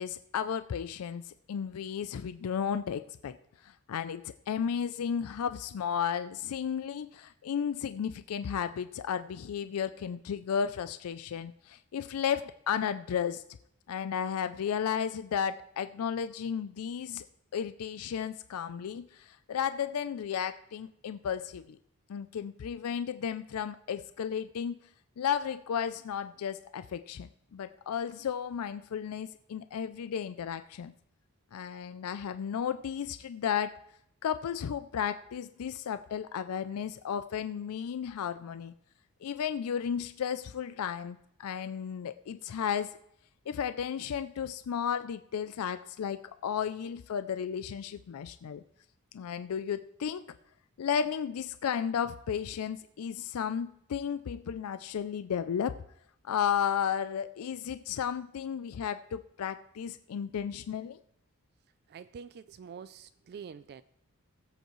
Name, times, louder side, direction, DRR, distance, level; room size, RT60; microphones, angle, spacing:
voice 1, 0.0-3.4 3.6-13.4 13.9-17.2 17.5-21.8 22.1-24.8 25.2-30.9 31.5-33.8 34.2-38.7 39.2-43.0 43.5-48.6 49.1-50.2 50.8-55.8 56.2-61.0, left 8 dB, 70° left, 12 dB, 0.4 m, -33 dB
voice 2, 61.9-63.8, right 6 dB, 45° right, 13 dB, 0.3 m, -46 dB
20.5 x 8.0 x 3.1 m, 0.73 s
head